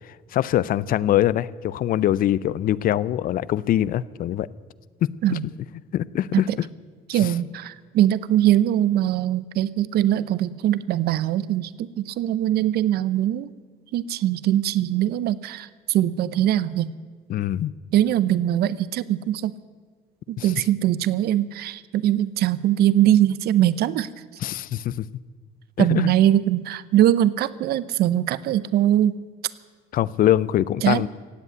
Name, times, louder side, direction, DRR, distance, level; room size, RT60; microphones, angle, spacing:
voice 1, 0.3-4.5 5.0-5.4 5.9-6.5 7.1-7.3 17.3-17.7 20.4-20.5 24.4-25.1 25.8-26.1 29.9-31.1, left 12 dB, 55° left, 20 dB, 0.5 m, -23 dB
voice 2, 7.1-13.5 13.9-16.9 17.9-19.5 20.3-24.1 25.8-29.2 30.8-31.1, right 12 dB, 70° right, 18 dB, 0.6 m, -21 dB
16.5 x 8.3 x 9.3 m, 1.5 s
cardioid pair, 110°, 17 cm